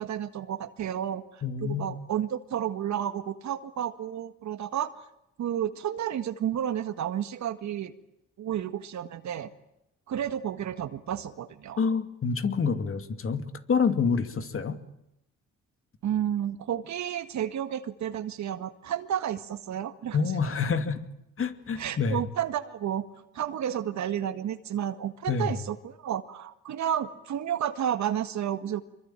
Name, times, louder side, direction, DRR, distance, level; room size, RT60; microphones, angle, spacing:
voice 1, 0.0-5.1 5.4-7.9 8.4-9.5 10.1-11.8 16.0-20.2 21.8-23.1 23.3-28.8, right 10 dB, 70° right, 11 dB, 1.8 m, -31 dB
voice 2, 1.4-1.9 11.8-14.8 20.1-21.0 21.4-22.2 25.3-25.6, left 5 dB, 45° left, 9 dB, 2.6 m, -27 dB
26.0 x 23.0 x 9.0 m, 0.84 s
cardioid pair, 90°, 30 cm